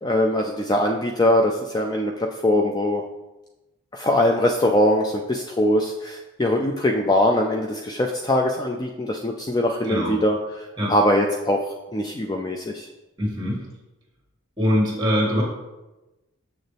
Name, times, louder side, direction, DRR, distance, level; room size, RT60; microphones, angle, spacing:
voice 1, 0.0-3.0 3.9-11.7 11.9-12.9, left 1 dB, 20° left, 2 dB, 0.3 m, -22 dB
voice 2, 13.2-13.6 14.6-15.4, equal, 20° right, -2 dB, 2.0 m, -22 dB
6.9 x 6.5 x 3.4 m, 1.0 s
head